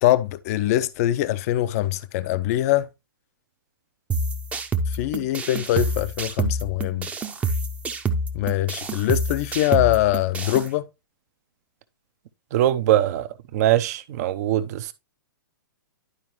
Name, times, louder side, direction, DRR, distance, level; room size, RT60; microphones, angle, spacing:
voice 1, 0.0-2.9 4.9-7.1 8.3-10.9, left 14 dB, 45° left, 0.5 m, -23 dB
sound 1, 4.1-10.7, right 2 dB, 10° right, 0.7 m, -27 dB
voice 2, 12.5-14.9, right 12 dB, 45° right, 0.7 m, -22 dB
11.0 x 4.6 x 3.0 m
hypercardioid pair, 120°, 12 cm